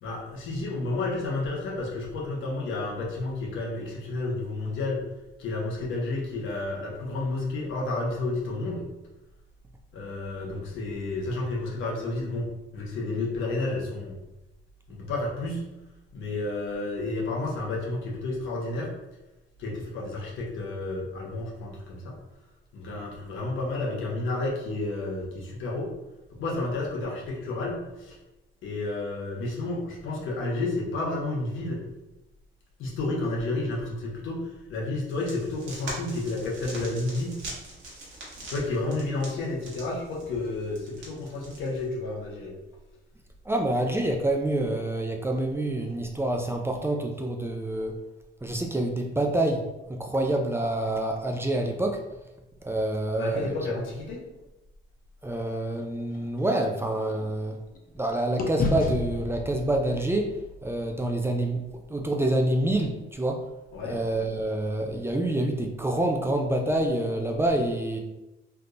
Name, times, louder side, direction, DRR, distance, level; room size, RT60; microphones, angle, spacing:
voice 1, 0.0-5.0 5.4-8.9 9.9-14.2 14.9-15.6 16.1-18.9 19.6-22.2 22.7-25.9 26.3-28.2 28.6-31.8 32.8-37.4 38.5-42.5 53.1-54.2 63.7-64.0, left 2 dB, 80° left, -2 dB, 1.0 m, -31 dB
sound 1, 35.1-41.9, right 2 dB, 65° right, 1.2 m, -43 dB
voice 2, 43.5-48.0 48.4-52.0 52.6-53.5 55.2-57.6 57.9-61.6 61.9-63.5 63.8-68.0, right 1 dB, 10° right, 2 dB, 0.4 m, -27 dB
sound 2, 55.7-58.0 58.4-62.6, left 3 dB, 45° left, 0.6 m, -35 dB
3.5 x 2.8 x 2.5 m, 0.97 s
cardioid pair, 90°, 20 cm